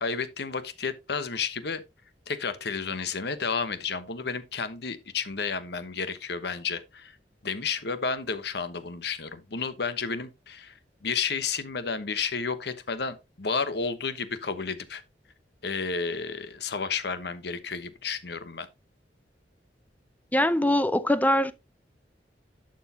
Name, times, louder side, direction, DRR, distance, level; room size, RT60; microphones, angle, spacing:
voice 1, 0.0-1.8 2.3-7.2 7.4-10.7 11.0-15.0 15.6-18.7, left 5 dB, 65° left, 1.1 m, -31 dB
voice 2, 20.3-21.5, left 1 dB, 10° left, 0.6 m, -22 dB
11.5 x 6.4 x 2.8 m
head